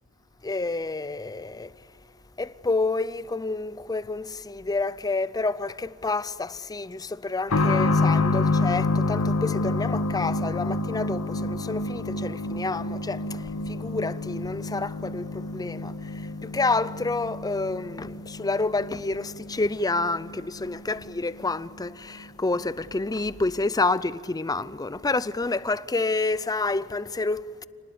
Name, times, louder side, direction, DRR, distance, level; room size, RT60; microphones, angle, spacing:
voice 1, 0.4-1.7 2.4-27.6, left 3 dB, 15° left, 0.5 m, -29 dB
sound 1, 7.5-21.9 22.2-22.3 23.3-23.4, left 3 dB, 75° left, 1.6 m, -28 dB
29.0 x 19.5 x 8.6 m
head